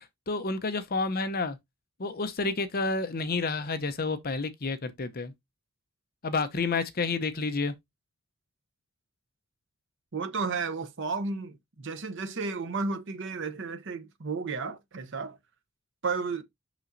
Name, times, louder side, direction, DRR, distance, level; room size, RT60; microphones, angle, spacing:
voice 1, 0.0-1.6 2.0-5.3 6.2-7.7, left 3 dB, 45° left, 0.8 m, -30 dB
voice 2, 10.1-15.4 16.0-16.4, right 4 dB, 60° right, 0.8 m, -33 dB
6.0 x 6.0 x 2.6 m
head